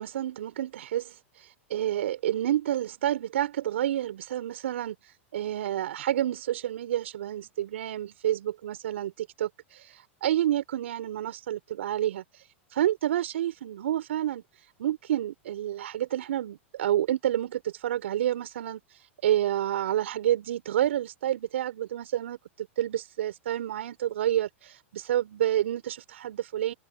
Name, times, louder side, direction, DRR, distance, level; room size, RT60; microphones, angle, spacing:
voice 1, 0.0-4.9 5.3-12.4 12.7-14.4 14.8-18.8 19.2-26.7, right 12 dB, 70° right, 4.4 m, -29 dB
hypercardioid pair, 100°, 7 cm